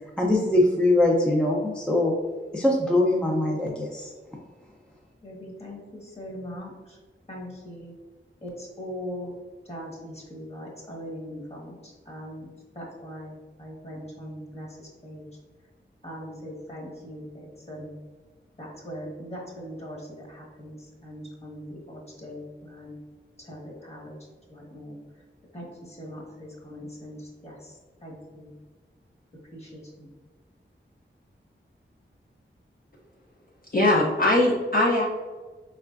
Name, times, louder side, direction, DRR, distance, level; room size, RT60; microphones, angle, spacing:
voice 1, 0.2-2.2 2.5-4.1, left 1 dB, 5° left, -2 dB, 0.5 m, -22 dB
voice 2, 5.2-7.0 7.3-7.9 8.4-9.4 9.6-15.2 16.0-17.9 18.6-23.0 23.4-24.1 24.5-25.0 25.5-28.5 29.3-30.1, equal, 30° left, -3 dB, 1.3 m, -40 dB
voice 3, 33.7-35.0, left 1 dB, 45° left, -4 dB, 0.6 m, -21 dB
4.7 x 3.2 x 2.5 m, 1.4 s
wide cardioid pair, 70°, 21 cm